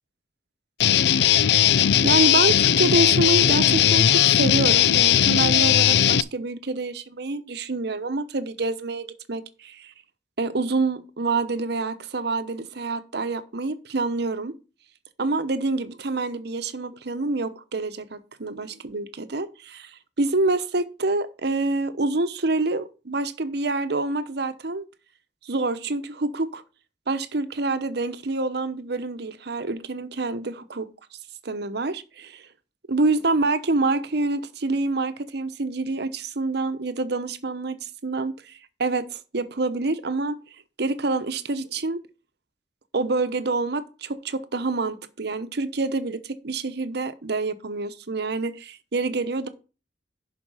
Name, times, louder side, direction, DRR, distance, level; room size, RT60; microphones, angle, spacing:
Guitar, 0.8-6.2, left 10 dB, 70° left, 0.4 m, -18 dB
voice 1, 2.0-9.9 10.4-14.5 15.2-24.8 25.4-26.6 27.1-30.9 31.4-32.5 32.9-40.4 40.8-42.0 42.9-49.5, right 3 dB, 65° right, 0.9 m, -27 dB
11.0 x 4.5 x 5.5 m
head